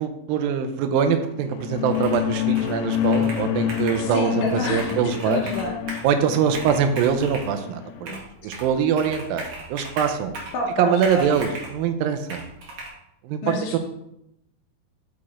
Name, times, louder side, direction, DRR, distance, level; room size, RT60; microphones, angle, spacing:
voice 1, 0.0-5.4 6.0-8.2 8.4-10.3 10.8-12.4 13.2-13.8, right 7 dB, 85° right, 7 dB, 2.3 m, -23 dB
sound 1, 1.4-8.1, left 12 dB, 90° left, 2.5 m, -28 dB
Computer keyboard, 1.9-2.3 2.5-4.1 4.5-6.1 6.5-7.5 8.1-8.7 9.0-10.6 11.0-11.8 12.3-12.9, right 2 dB, 55° right, 1.8 m, -37 dB
voice 2, 4.0-5.0 5.3-5.7 8.1-8.2 10.5-11.3 13.4-13.8, left 2 dB, 70° left, -1 dB, 1.9 m, -28 dB
6.2 x 4.8 x 4.2 m, 0.80 s
omnidirectional pair, 4.2 m